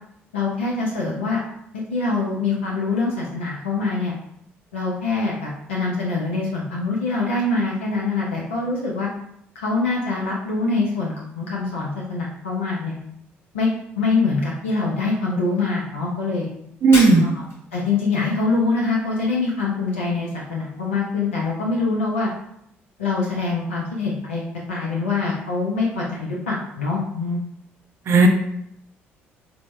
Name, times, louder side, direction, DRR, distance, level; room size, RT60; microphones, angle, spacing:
voice 1, 0.3-1.4 1.9-4.1 4.7-9.1 9.6-13.0 13.5-13.7 14.0-16.5 17.2-17.4 17.7-22.3 23.0-27.4, left 3 dB, 80° left, -4 dB, 0.5 m, -24 dB
voice 2, 16.8-17.3 28.1-28.3, right 3 dB, 45° right, 3 dB, 0.5 m, -13 dB
Shatter, 16.9-17.7, left 2 dB, 40° left, 0.9 m, -29 dB
3.4 x 2.0 x 3.1 m, 0.75 s
figure-of-eight pair, 45°, 7 cm